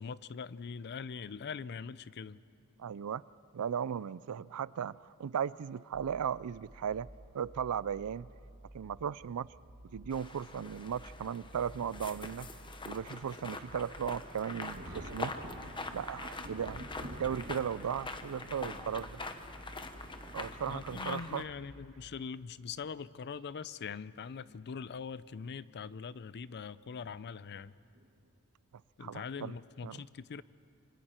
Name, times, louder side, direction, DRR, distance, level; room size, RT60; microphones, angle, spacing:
voice 1, 0.0-2.4 20.7-27.7 29.0-30.4, left 6 dB, 50° left, 17 dB, 0.5 m, -42 dB
voice 2, 2.8-3.2 3.5-7.1 7.3-8.3 8.7-9.5 9.9-12.5 12.9-15.3 15.9-16.8 17.2-19.2 20.3-21.5 29.0-29.6 29.8-30.0, right 8 dB, 80° right, 20 dB, 0.4 m, -36 dB
sound 1, 5.9-21.9, right 1 dB, 30° right, 1.2 m, -54 dB
sound 2, 10.1-21.4, left 3 dB, 20° left, 1.0 m, -44 dB
Thunder, 14.7-21.8 22.8-22.9 24.3-24.6 25.0-25.1 27.0-27.2 27.9-28.3, right 1 dB, 50° right, 2.1 m, -50 dB
26.0 x 25.5 x 4.4 m, 2.5 s
head